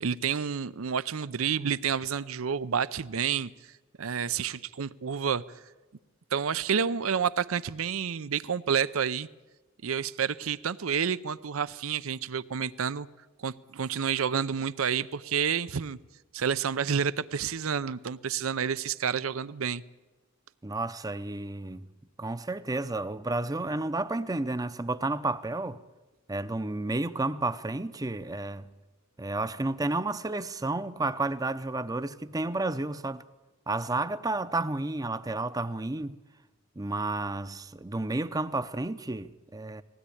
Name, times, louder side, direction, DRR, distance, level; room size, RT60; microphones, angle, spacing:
voice 1, 0.0-3.5 4.0-5.4 6.3-9.3 9.8-13.1 13.4-16.0 16.3-19.8, right 7 dB, 75° right, 0.6 m, -29 dB
voice 2, 20.6-21.8 22.2-25.8 26.3-28.7 29.2-33.2 33.7-36.2 36.8-39.8, right 2 dB, 15° right, 0.6 m, -31 dB
20.0 x 16.5 x 9.9 m
head